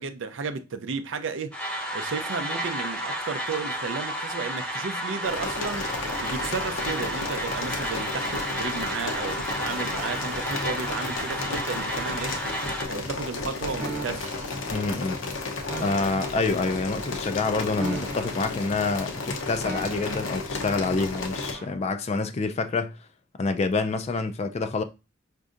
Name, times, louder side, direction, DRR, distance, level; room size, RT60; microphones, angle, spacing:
voice 1, 0.0-1.6 1.9-12.3 12.9-14.5, right 4 dB, 65° right, 0.5 m, -33 dB
sound 1, 1.5-12.8, right 1 dB, 5° left, 0.7 m, -32 dB
sound 2, 5.2-21.5, left 3 dB, 80° left, 0.7 m, -33 dB
sound 3, 13.8-14.4 15.7-16.3 17.7-18.6 19.6-20.4 21.5-21.8, right 3 dB, 45° right, 0.9 m, -37 dB
voice 2, 14.7-15.2 15.8-23.0 23.4-24.8, left 3 dB, 35° left, 0.3 m, -27 dB
5.1 x 2.6 x 2.5 m
head